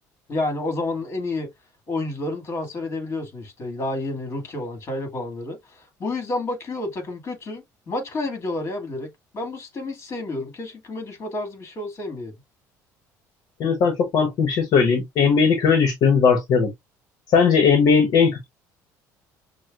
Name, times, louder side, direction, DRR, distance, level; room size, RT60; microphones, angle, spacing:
voice 1, 0.3-1.5 1.9-9.1 9.3-12.3, left 2 dB, 40° left, 2.1 m, -30 dB
voice 2, 13.6-16.7 17.3-18.5, left 5 dB, 65° left, 1.1 m, -18 dB
6.2 x 2.3 x 2.4 m
cardioid pair, 125°, 7 cm